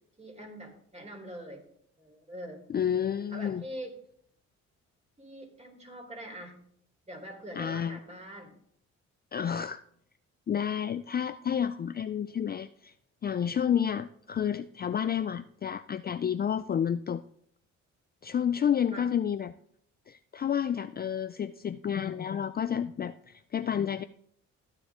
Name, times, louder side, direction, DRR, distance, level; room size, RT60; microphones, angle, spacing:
voice 1, 0.2-1.6 2.0-2.6 3.3-3.9 5.2-6.6 7.1-8.5 18.3-18.4 18.9-19.1, equal, 20° right, 3 dB, 3.9 m, -43 dB
voice 2, 2.7-3.6 7.5-8.0 9.3-9.8 10.5-12.9 13.2-17.2 18.2-19.5 20.1-24.0, left 8 dB, 30° left, 11 dB, 0.4 m, -30 dB
14.0 x 9.7 x 3.7 m, 0.65 s
cardioid pair, 90°, 30 cm